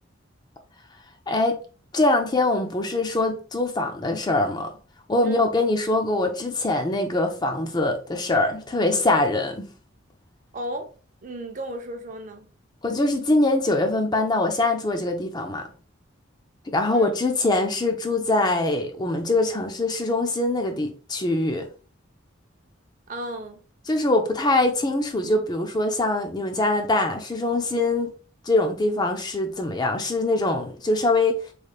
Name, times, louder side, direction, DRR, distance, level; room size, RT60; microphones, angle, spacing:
voice 1, 1.3-1.6 1.9-4.7 5.1-9.7 12.8-15.7 16.7-21.7 23.9-28.1 28.5-31.4, left 2 dB, 20° left, 0.4 m, -23 dB
voice 2, 10.5-10.9 11.2-12.5 16.9-17.1 23.1-23.6, right 1 dB, 40° right, 0.5 m, -34 dB
3.2 x 3.2 x 2.3 m
head